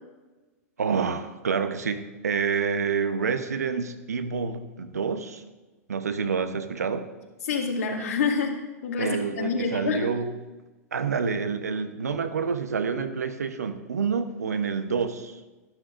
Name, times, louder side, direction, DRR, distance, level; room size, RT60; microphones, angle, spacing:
voice 1, 0.8-5.4 5.9-7.1 9.0-10.3 10.9-15.4, right 5 dB, 90° right, 10 dB, 0.8 m, -28 dB
voice 2, 7.4-8.5 8.8-10.3, left 5 dB, 75° left, 1 dB, 2.0 m, -27 dB
12.5 x 11.5 x 2.5 m, 1.2 s
hypercardioid pair, 110°, 8 cm